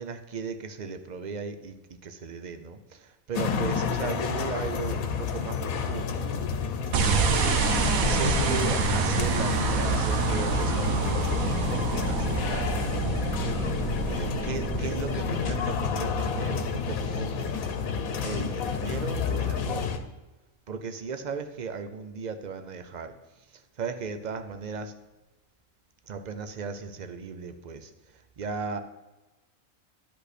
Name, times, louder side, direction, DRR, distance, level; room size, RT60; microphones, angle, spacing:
voice 1, 0.0-7.6 8.0-12.7 14.1-17.6 18.2-19.9 20.7-24.9 26.1-28.8, right 5 dB, 50° right, 8 dB, 0.6 m, -37 dB
sound 1, 3.3-20.0, left 6 dB, 90° left, 1.2 m, -30 dB
sound 2, 6.9-16.3, right 5 dB, 85° right, 1.3 m, -27 dB
11.0 x 5.4 x 4.2 m, 1.1 s
omnidirectional pair, 1.4 m